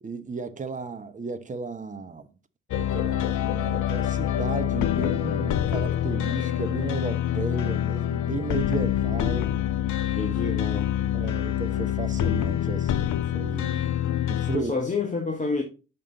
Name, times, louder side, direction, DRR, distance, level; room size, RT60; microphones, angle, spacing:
voice 1, 0.0-2.3 2.8-9.6 10.3-10.4 11.1-13.9 14.3-14.7, right 4 dB, 20° right, 0.8 m, -34 dB
sound 1, 2.7-14.6, left 11 dB, 50° left, 0.7 m, -26 dB
voice 2, 10.1-11.0 14.5-15.6, left 3 dB, 20° left, 1.2 m, -28 dB
6.8 x 5.2 x 3.9 m
figure-of-eight pair, 45°, 37 cm